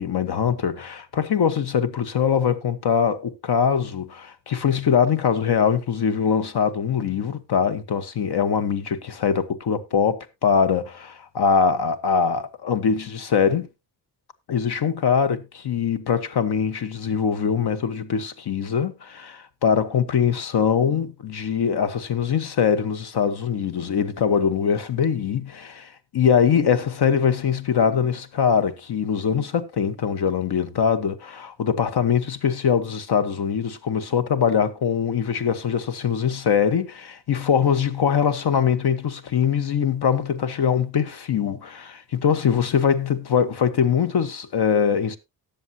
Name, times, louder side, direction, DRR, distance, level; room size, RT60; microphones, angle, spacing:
voice 1, 0.0-13.7 14.5-45.2, left 7 dB, 65° left, 1.3 m, -22 dB
19.0 x 7.1 x 2.8 m
wide cardioid pair, 175°, 43 cm